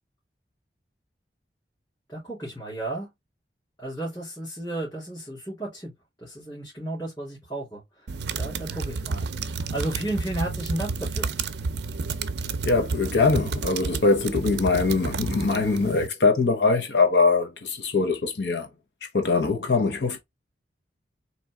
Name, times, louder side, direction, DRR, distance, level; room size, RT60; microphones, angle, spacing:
voice 1, 2.1-3.1 3.8-5.9 6.2-8.1 8.3-11.3, right 1 dB, 20° left, 2.5 m, -33 dB
sound 1, 8.1-16.1, right 4 dB, 70° right, 0.5 m, -31 dB
voice 2, 12.6-18.7 19.1-20.2, left 3 dB, 75° left, 0.9 m, -22 dB
4.2 x 2.9 x 3.5 m
head